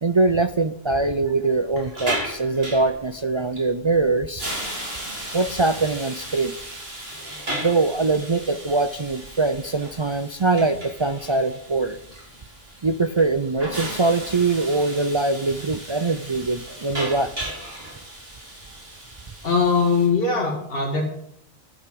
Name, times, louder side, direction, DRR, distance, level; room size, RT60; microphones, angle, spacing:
voice 1, 0.0-4.5 5.3-6.5 7.5-12.0 12.8-17.5, right 3 dB, 40° right, 11 dB, 0.5 m, -23 dB
Hiss, 1.5-20.1, right 1 dB, 70° right, 4.5 m, -35 dB
voice 2, 19.4-21.0, left 4 dB, 65° left, -1 dB, 2.2 m, -21 dB
12.5 x 8.0 x 8.4 m, 0.71 s
omnidirectional pair, 1.0 m